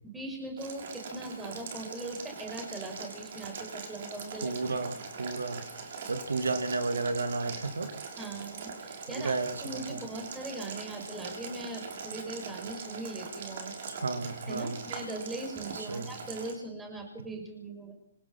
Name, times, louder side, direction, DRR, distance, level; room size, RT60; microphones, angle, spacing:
voice 1, 0.0-4.9 8.2-13.7 14.5-17.9, right 2 dB, 10° right, 2 dB, 6.5 m, -40 dB
Boiling, 0.6-16.5, right 5 dB, 50° right, 6.3 m, -42 dB
voice 2, 4.4-5.6 6.1-7.9 9.1-10.0 13.9-14.8 15.7-16.1, right 3 dB, 75° right, 8 dB, 2.9 m, -32 dB
27.0 x 16.5 x 5.8 m, 0.68 s
figure-of-eight pair, 125°, 0 cm